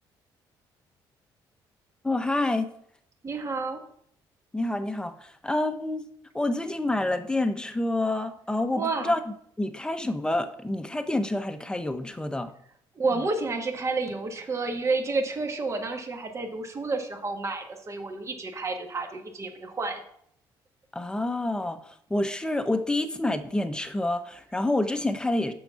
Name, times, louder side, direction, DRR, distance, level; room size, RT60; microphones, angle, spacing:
voice 1, 2.0-2.7 4.5-6.0 6.3-12.5 13.1-13.2 20.9-25.5, left 2 dB, 10° left, 8 dB, 0.8 m, -28 dB
voice 2, 3.2-3.8 8.7-9.1 12.9-20.0, right 3 dB, 30° right, 4 dB, 1.4 m, -30 dB
6.9 x 5.8 x 5.7 m, 0.67 s
cardioid pair, 90°, 9 cm